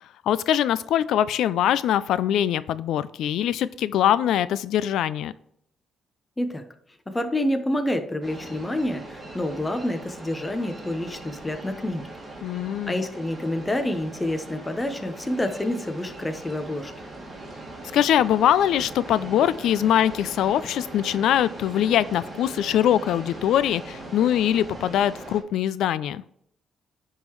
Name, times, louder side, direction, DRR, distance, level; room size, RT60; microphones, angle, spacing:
voice 1, 0.3-5.3 12.4-13.0 17.9-26.2, left 11 dB, 80° left, 17 dB, 0.3 m, -22 dB
voice 2, 7.1-12.1 12.9-16.9, left 1 dB, 15° left, 6 dB, 0.9 m, -28 dB
sound 1, 8.2-25.4, right 2 dB, 25° right, 2.0 m, -40 dB
10.5 x 3.7 x 3.1 m, 0.71 s
cardioid pair, 90°, 0 cm